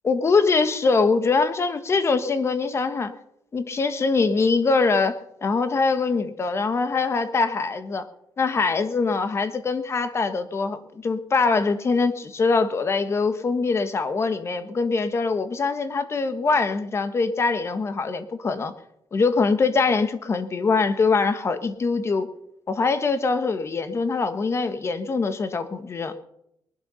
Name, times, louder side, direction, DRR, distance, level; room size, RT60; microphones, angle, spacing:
voice 1, 0.0-3.1 3.5-8.1 8.4-18.7 19.1-22.3 22.7-26.1, left 4 dB, 35° left, 10 dB, 1.5 m, -23 dB
20.0 x 12.0 x 5.6 m, 0.77 s
cardioid pair, 135°, 8 cm